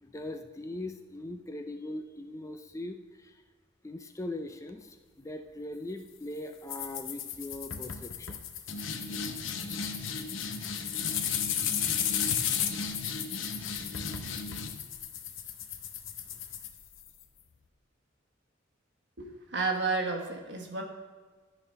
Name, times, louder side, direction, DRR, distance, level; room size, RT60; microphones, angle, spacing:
voice 1, 0.0-3.3 3.8-8.4, left 1 dB, 15° left, 6 dB, 0.4 m, -40 dB
sound 1, 6.7-17.2, left 7 dB, 80° left, 0.7 m, -34 dB
voice 2, 19.2-20.8, right 3 dB, 60° right, 1 dB, 1.4 m, -31 dB
12.0 x 4.2 x 5.4 m, 1.4 s
head